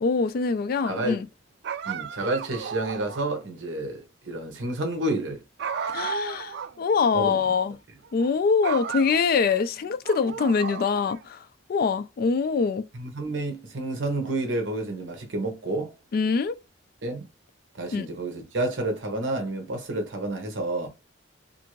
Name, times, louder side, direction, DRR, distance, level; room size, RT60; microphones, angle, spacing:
voice 1, 0.0-1.3 5.9-7.7 8.1-12.8 16.1-16.5 17.9-18.1, left 5 dB, 50° left, 0.3 m, -24 dB
voice 2, 0.8-1.2 1.8-5.4 7.1-7.4 12.9-15.9 17.0-17.3 17.7-20.9, right 2 dB, 75° right, 0.9 m, -30 dB
sound 1, 1.6-3.4 5.6-6.8 7.1-7.2 8.0-8.3 8.6-9.6 10.0-11.2, right 6 dB, 60° right, 0.3 m, -34 dB
2.5 x 2.5 x 3.0 m
head